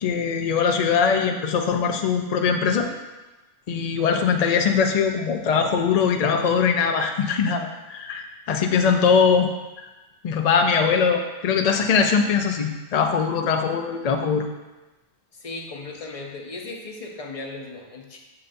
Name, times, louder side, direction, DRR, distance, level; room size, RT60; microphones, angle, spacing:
voice 1, 0.0-2.9 3.7-9.5 9.8-9.9 10.2-14.5, left 6 dB, 80° left, 4 dB, 0.3 m, -21 dB
voice 2, 15.4-18.2, left 3 dB, 40° left, 1 dB, 0.6 m, -36 dB
6.6 x 5.6 x 2.6 m, 1.1 s
omnidirectional pair, 1.3 m